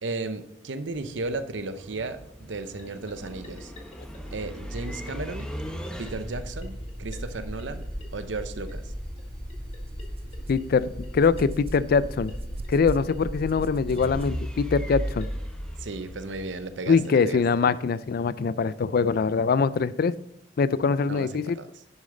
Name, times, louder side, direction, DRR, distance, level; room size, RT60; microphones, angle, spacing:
voice 1, 0.0-3.7 4.3-5.5 6.0-7.9 8.1-8.9 15.8-17.4 21.1-21.3 21.6-21.7, right 3 dB, 85° right, 10 dB, 0.8 m, -34 dB
sound 1, 0.9-16.9, equal, 5° left, 1.0 m, -36 dB
sound 2, 2.8-18.1, left 2 dB, 35° left, 1.7 m, -53 dB
sound 3, 9.2-9.3 9.8-14.8, right 3 dB, 30° right, 0.3 m, -43 dB
voice 2, 10.5-12.3 12.7-15.3 16.9-20.1 20.6-21.6, left 5 dB, 55° left, 17 dB, 0.4 m, -23 dB
10.5 x 6.4 x 3.8 m, 0.79 s
head